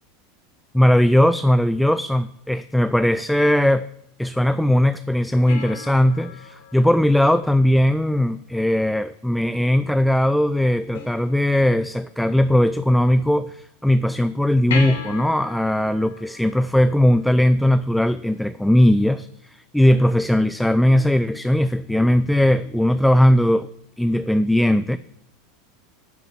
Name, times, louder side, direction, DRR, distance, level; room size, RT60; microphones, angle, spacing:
voice 1, 0.7-3.8 4.2-23.7 24.0-25.0, left 1 dB, ahead, 13 dB, 0.4 m, -19 dB
sound 1, 5.5-8.1 10.9-11.9 14.7-17.6 20.7-20.8, left 4 dB, 75° left, 2.3 m, -36 dB
12.0 x 6.1 x 7.2 m, 0.77 s
figure-of-eight pair, 85°, 0 cm